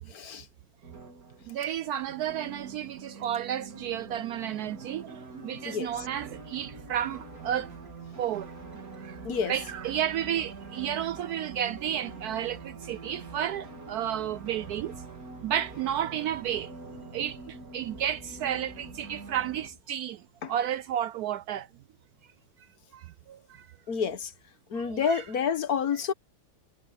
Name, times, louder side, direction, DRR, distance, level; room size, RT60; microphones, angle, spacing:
voice 1, 0.1-0.5 5.6-6.1 9.2-9.7 20.4-20.5 23.9-24.3 24.7-26.1, left 6 dB, 55° left, 1.6 m, -29 dB
sound 1, 0.8-19.7, right 4 dB, 50° right, 3.6 m, -45 dB
voice 2, 1.5-7.7 8.2-8.5 9.0-9.2 9.5-15.0 15.4-16.7 17.1-21.7 22.9-23.7 24.7-25.2, right 10 dB, 70° right, 0.9 m, -32 dB
sound 2, 5.8-19.8, right 1 dB, 15° right, 3.3 m, -53 dB
omnidirectional pair, 1.9 m